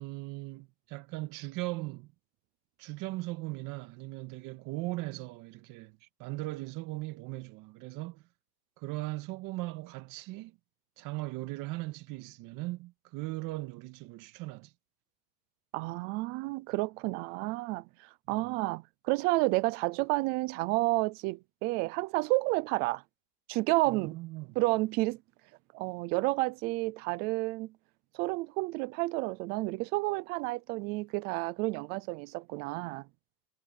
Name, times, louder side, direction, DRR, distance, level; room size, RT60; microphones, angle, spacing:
voice 1, 0.0-2.1 2.8-8.2 8.8-10.6 11.0-14.7 18.3-18.6 23.9-24.6, right 20 dB, 40° right, 2.1 m, -39 dB
voice 2, 15.7-17.9 18.3-23.0 23.5-24.2 24.6-25.2 25.7-27.7 28.1-33.1, right 22 dB, 20° right, 0.4 m, -30 dB
supercardioid pair, 145°, 49 cm